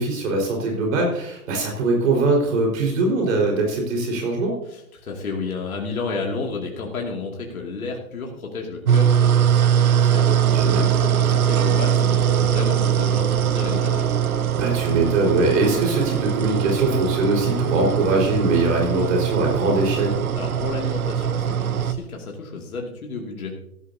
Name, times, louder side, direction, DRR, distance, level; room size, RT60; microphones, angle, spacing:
voice 1, 0.0-4.5 10.5-10.9 14.5-20.2, right 2 dB, 60° right, 0 dB, 4.8 m, -22 dB
voice 2, 4.7-14.2 20.4-23.6, left 4 dB, 80° left, 0 dB, 2.6 m, -32 dB
sound 1, 8.9-21.9, right 9 dB, 80° right, 1.1 m, -21 dB
15.5 x 13.5 x 2.8 m, 0.76 s
hypercardioid pair, 120°, 42 cm